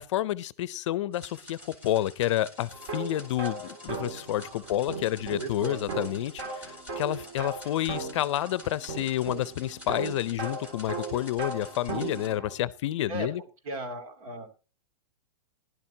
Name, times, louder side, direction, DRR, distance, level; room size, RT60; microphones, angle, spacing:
voice 1, 0.0-13.4, left 13 dB, 55° left, 0.5 m, -29 dB
sound 1, 1.1-12.3, left 2 dB, 10° right, 2.8 m, -50 dB
sound 2, 2.7-12.5, right 3 dB, 45° right, 2.5 m, -38 dB
voice 2, 5.3-6.1 13.1-13.3 13.6-14.5, right 2 dB, 70° right, 2.6 m, -36 dB
15.5 x 11.5 x 2.8 m
supercardioid pair, 165°, 19 cm